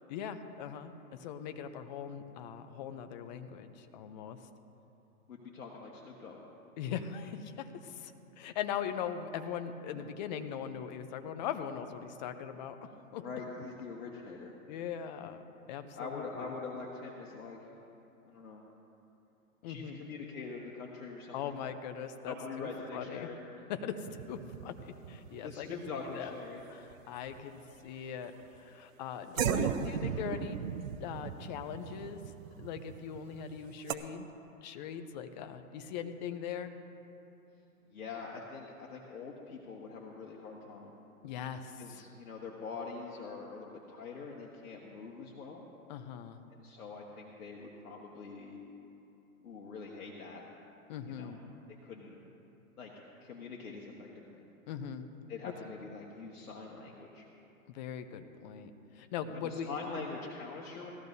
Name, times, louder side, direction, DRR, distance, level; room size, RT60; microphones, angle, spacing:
voice 1, 0.1-0.9 1.2-4.4 6.8-12.8 13.1-13.2 14.7-15.4 15.7-16.5 19.6-20.0 21.3-23.3 23.7-25.8 26.1-26.4 26.7-30.6 31.0-32.2 32.6-34.3 34.6-36.7 41.2-42.0 45.9-46.4 50.9-51.4 54.7-55.1 55.4-55.5 57.7-59.7, left 8 dB, 30° left, 9 dB, 0.7 m, -40 dB
voice 2, 5.3-6.4 9.9-10.0 13.2-14.5 15.9-17.6 18.2-18.6 19.6-21.5 22.2-23.4 25.4-26.6 29.6-29.9 37.9-40.9 41.8-45.6 46.5-48.6 49.4-50.4 51.0-51.4 51.7-52.2 52.8-52.9 53.2-54.4 55.3-57.3 59.4-60.9, left 4 dB, 80° left, -2 dB, 1.6 m, -44 dB
sound 1, 24.0-26.9 27.2-27.8 28.4-28.6 29.4-33.9, right 9 dB, 65° right, 0.7 m, -37 dB
18.5 x 13.5 x 2.7 m, 2.9 s
hypercardioid pair, 140°, 44 cm